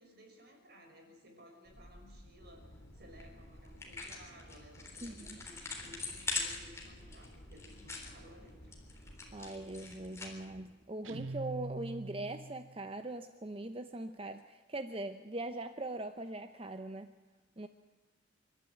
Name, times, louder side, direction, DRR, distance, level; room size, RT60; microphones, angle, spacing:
voice 1, 0.0-8.8, equal, 50° right, 3 dB, 5.4 m, -58 dB
sound 1, 1.6-9.3, equal, 65° left, 2.8 m, -57 dB
sound 2, 2.4-10.6, left 4 dB, 15° left, 3.6 m, -44 dB
voice 2, 5.0-5.4 9.3-17.1 17.6-17.7, right 2 dB, 30° right, 9 dB, 0.7 m, -41 dB
Guitar, 11.0-12.7, right 2 dB, 75° right, 0.7 m, -43 dB
27.5 x 13.0 x 9.3 m, 1.4 s
head